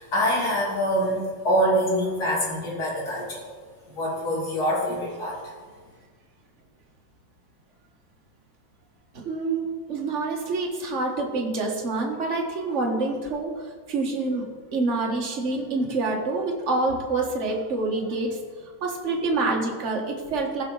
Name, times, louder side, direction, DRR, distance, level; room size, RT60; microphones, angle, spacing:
voice 1, 0.0-3.5 3.9-5.4, equal, 50° left, -5 dB, 3.0 m, -25 dB
voice 2, 9.2-13.5 13.9-14.4 14.7-18.4 18.8-20.6, right 3 dB, 40° right, 1 dB, 1.5 m, -26 dB
15.0 x 5.9 x 3.9 m, 1.5 s
omnidirectional pair, 2.2 m